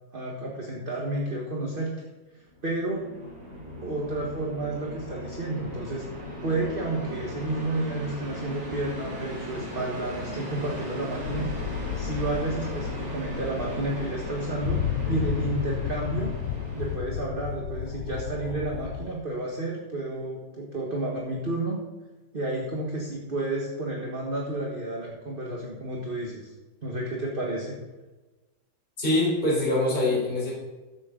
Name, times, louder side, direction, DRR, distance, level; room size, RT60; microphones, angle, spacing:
voice 1, 0.1-1.9 2.6-3.0 3.8-11.5 11.9-14.8 15.1-16.3 16.7-21.8 22.3-26.5 26.8-27.8, right 2 dB, 30° right, -3 dB, 1.6 m, -31 dB
sound 1, 2.5-17.0, equal, 50° right, 3.0 m, -38 dB
sound 2, 11.2-19.1, left 10 dB, 70° left, 1.1 m, -33 dB
voice 2, 29.0-30.5, left 1 dB, 25° left, -5 dB, 4.6 m, -24 dB
13.5 x 8.8 x 3.9 m, 1.2 s
omnidirectional pair, 2.0 m